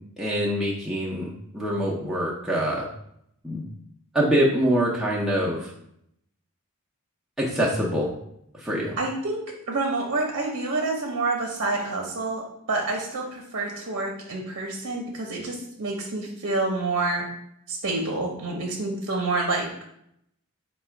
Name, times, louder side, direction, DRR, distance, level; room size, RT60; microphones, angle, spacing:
voice 1, 0.2-2.9 3.4-3.7 4.1-5.7 7.4-8.1 8.5-9.0, equal, ahead, -6 dB, 0.5 m, -25 dB
voice 2, 9.0-12.4 12.7-17.2 17.7-19.7, right 3 dB, 55° right, 0 dB, 0.6 m, -28 dB
4.0 x 2.2 x 4.4 m, 0.74 s
head